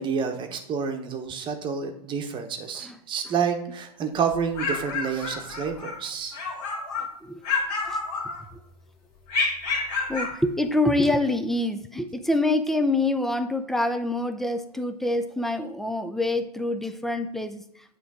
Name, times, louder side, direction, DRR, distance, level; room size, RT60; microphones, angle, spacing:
voice 1, 0.0-6.4, right 6 dB, 25° right, 5 dB, 0.9 m, -29 dB
sound 1, 4.3-6.0 6.3-7.1 7.4-8.7 9.3-10.4, left 4 dB, 55° left, 1.8 m, -29 dB
voice 2, 10.1-17.7, left 2 dB, ahead, 9 dB, 0.3 m, -26 dB
8.9 x 3.2 x 4.7 m, 0.76 s
hypercardioid pair, 120°, 21 cm